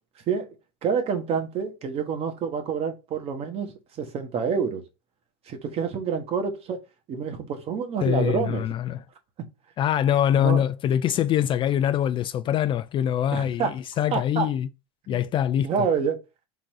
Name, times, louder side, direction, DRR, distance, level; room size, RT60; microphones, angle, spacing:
voice 1, 0.8-4.8 5.5-6.8 7.1-8.7 10.3-10.6 13.3-13.8 14.1-14.5 15.1-15.2 15.6-16.2, right 6 dB, 45° right, 1.1 m, -27 dB
voice 2, 8.0-9.0 9.8-14.7 15.1-15.9, left 10 dB, 35° left, 0.3 m, -24 dB
3.8 x 2.7 x 4.6 m
supercardioid pair, 110°, 15 cm